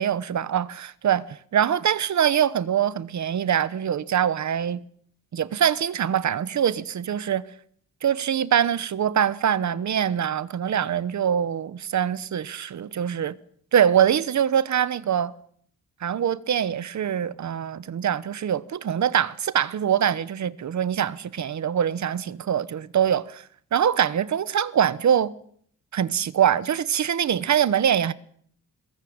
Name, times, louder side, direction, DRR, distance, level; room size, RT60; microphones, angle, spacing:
voice 1, 0.0-4.8 5.3-7.4 8.0-13.3 13.7-15.3 16.0-23.4 23.7-25.3 25.9-28.1, right 9 dB, 65° right, 1.1 m, -23 dB
22.5 x 19.5 x 8.8 m
wide cardioid pair, 160°, 31 cm